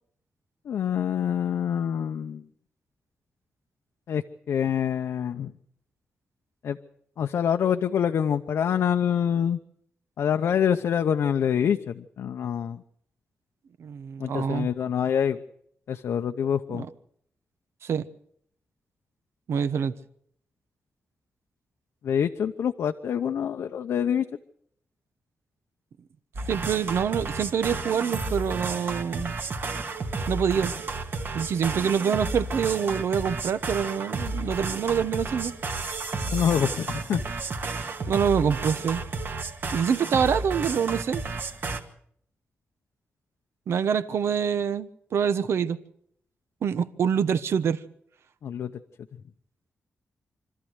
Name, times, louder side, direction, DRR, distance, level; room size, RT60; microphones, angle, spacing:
voice 1, 0.7-2.4 4.1-5.5 6.6-6.8 7.2-9.6 10.2-12.8 14.2-15.4 15.9-16.9 22.0-24.2 36.3-37.2 48.4-48.7, left 8 dB, 85° left, 0.8 m, -26 dB
voice 2, 13.8-14.7 16.7-16.9 17.8-18.0 19.5-19.9 26.5-29.3 30.3-30.7 31.3-35.5 38.1-39.0 39.7-41.2 43.7-45.8 46.6-47.8, right 7 dB, 75° right, 1.1 m, -26 dB
sound 1, 26.3-41.8, right 3 dB, 50° right, 2.0 m, -32 dB
26.0 x 13.5 x 8.1 m
wide cardioid pair, 160°, 4 cm